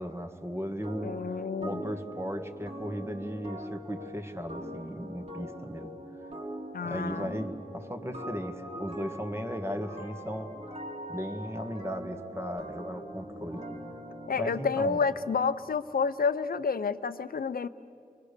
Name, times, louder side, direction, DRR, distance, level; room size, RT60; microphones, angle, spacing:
voice 1, 0.0-5.9 6.8-10.5 11.1-13.6 14.4-15.1, equal, 15° right, 5 dB, 1.6 m, -36 dB
sound 1, 0.8-15.4, equal, 45° right, 2.6 m, -42 dB
voice 2, 1.0-1.9 6.7-7.3 14.3-17.7, left 5 dB, 75° left, 13 dB, 0.7 m, -29 dB
30.0 x 23.0 x 6.8 m, 2.5 s
wide cardioid pair, 85°, 15 cm